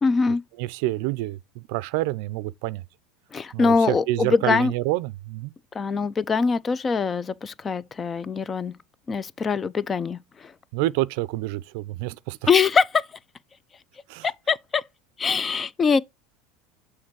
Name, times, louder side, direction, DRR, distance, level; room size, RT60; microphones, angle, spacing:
voice 1, 0.0-0.4 3.3-4.7 5.7-8.8 9.1-10.5 12.5-13.1 14.2-14.8 15.2-16.0, left 5 dB, 25° left, 0.5 m, -23 dB
voice 2, 0.6-2.8 3.5-5.5 10.7-12.5 14.1-14.3, right 18 dB, 70° right, 0.4 m, -28 dB
6.5 x 3.7 x 4.6 m
hypercardioid pair, 95°, 0 cm